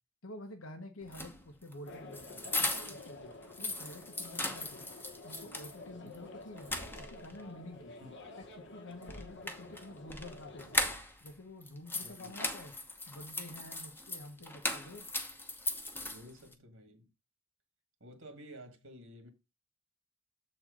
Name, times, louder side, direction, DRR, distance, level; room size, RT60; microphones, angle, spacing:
voice 1, 0.2-2.6 2.9-4.9 5.2-7.9 8.4-10.8 11.2-15.1, left 1 dB, 90° left, 1.2 m, -49 dB
sound 1, 1.0-3.1 3.4-5.8 6.1-6.2 6.6-7.4 9.0-11.3 11.6-16.5, left 2 dB, 10° left, 0.9 m, -38 dB
sound 2, 1.8-11.0, left 2 dB, 60° left, 1.4 m, -51 dB
voice 2, 12.0-12.4 16.1-17.1 18.0-19.3, equal, 70° right, 1.7 m, -52 dB
7.2 x 4.4 x 4.9 m
head